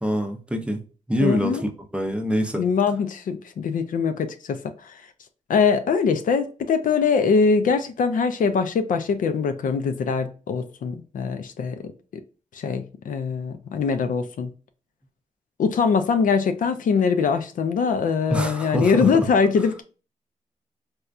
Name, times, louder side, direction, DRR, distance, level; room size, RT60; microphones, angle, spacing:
voice 1, 0.0-0.8 1.1-2.6 18.3-19.1, equal, 10° right, 0.5 m, -25 dB
voice 2, 1.2-1.6 2.6-4.6 4.8-5.0 5.5-11.9 12.5-14.5 15.6-19.8, left 5 dB, 85° left, 0.5 m, -22 dB
4.2 x 2.3 x 2.4 m
wide cardioid pair, 145°, 14 cm